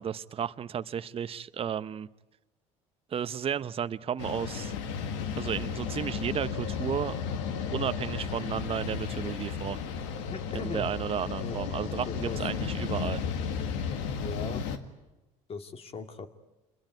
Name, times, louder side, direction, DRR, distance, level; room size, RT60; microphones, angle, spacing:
voice 1, 0.0-2.1 3.1-4.7 5.4-7.2 7.7-9.8 10.5-13.2, right 8 dB, 40° right, 12 dB, 0.9 m, -33 dB
sound 1, 4.2-14.8, left 6 dB, 85° left, 2.0 m, -34 dB
voice 2, 10.3-10.8 11.3-11.6 12.1-12.4 14.2-14.6 15.5-16.3, left 5 dB, 40° left, 7 dB, 2.6 m, -38 dB
28.0 x 22.0 x 9.4 m, 1.0 s
supercardioid pair, 75°, 15 cm